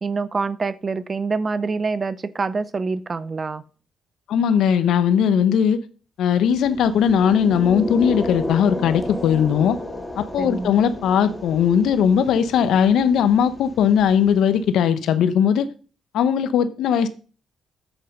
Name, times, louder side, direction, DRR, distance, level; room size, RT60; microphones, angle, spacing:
voice 1, 0.0-3.6 10.4-10.9, right 4 dB, 35° right, 0.6 m, -26 dB
voice 2, 4.3-5.8 6.2-9.8 10.2-15.7 16.1-17.1, left 8 dB, 80° left, 0.9 m, -19 dB
sound 1, 6.5-14.6, left 1 dB, 5° left, 1.8 m, -33 dB
8.9 x 8.1 x 5.4 m
cardioid pair, 90°, 0 cm